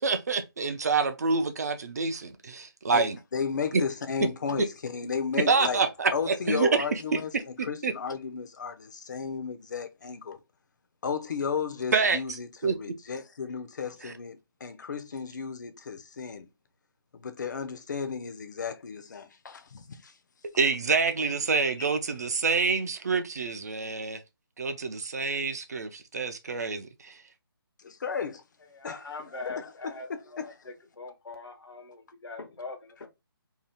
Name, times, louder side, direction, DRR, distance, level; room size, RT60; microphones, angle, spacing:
voice 1, 0.0-3.2 5.5-6.8 7.1-7.9 11.9-12.2 12.6-12.7 14.0-14.1 20.6-24.2 24.6-27.2, right 4 dB, 40° right, 0.4 m, -27 dB
voice 2, 2.9-5.8 6.1-7.3 7.6-10.4 11.0-16.5 17.1-20.1 21.8-21.9 27.8-28.4 28.8-29.0 29.3-30.6, left 6 dB, 50° left, 0.4 m, -34 dB
voice 3, 28.7-33.1, left 3 dB, 90° left, 0.9 m, -42 dB
2.7 x 2.1 x 3.3 m
hypercardioid pair, 170°, 13 cm